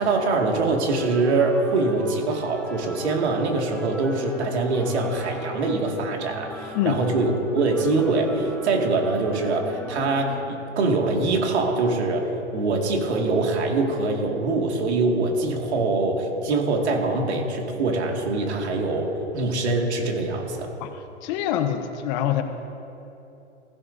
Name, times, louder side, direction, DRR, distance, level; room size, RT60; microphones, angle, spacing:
voice 1, 0.0-20.7, right 3 dB, 70° right, 1 dB, 2.3 m, -24 dB
sound 1, 0.9-10.4, left 1 dB, 5° left, 0.6 m, -41 dB
voice 2, 20.8-22.4, left 10 dB, 40° left, 8 dB, 1.0 m, -25 dB
15.5 x 15.5 x 2.7 m, 2.9 s
hypercardioid pair, 125°, 35 cm